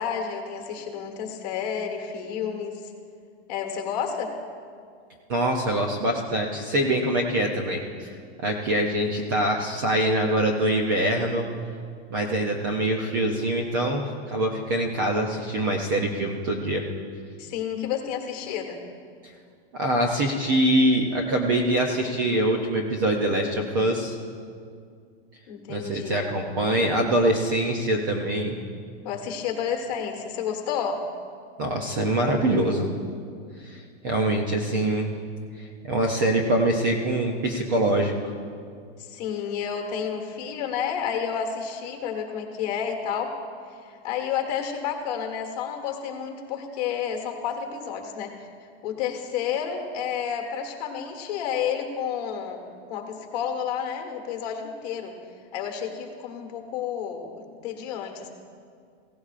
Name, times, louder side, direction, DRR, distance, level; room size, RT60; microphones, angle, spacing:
voice 1, 0.0-2.8 3.5-4.3 17.4-18.8 25.5-26.3 29.0-31.0 39.0-43.3 43.8-48.5 48.8-55.1 55.5-58.3, left 7 dB, 40° left, 3 dB, 1.4 m, -30 dB
voice 2, 5.3-11.5 12.1-16.8 19.7-24.2 25.7-28.6 31.6-32.9 33.6-35.1 35.6-38.1, right 1 dB, 20° right, 2 dB, 0.4 m, -24 dB
16.5 x 15.5 x 2.4 m, 2.2 s
supercardioid pair, 175°, 33 cm